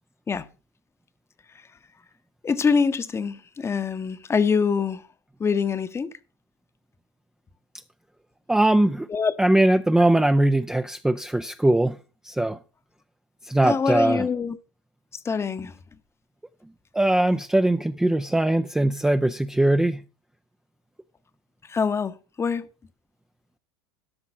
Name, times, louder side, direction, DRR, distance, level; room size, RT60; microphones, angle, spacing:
voice 1, 2.4-5.0 5.4-6.1 9.1-9.3 13.6-14.6 15.2-15.7 21.7-22.7, left 5 dB, 20° left, 0.9 m, -24 dB
voice 2, 8.5-9.1 9.4-12.0 12.3-12.6 13.5-14.3 16.9-20.0, right 1 dB, 5° right, 0.5 m, -21 dB
12.5 x 6.0 x 5.6 m
hypercardioid pair, 85°, 13 cm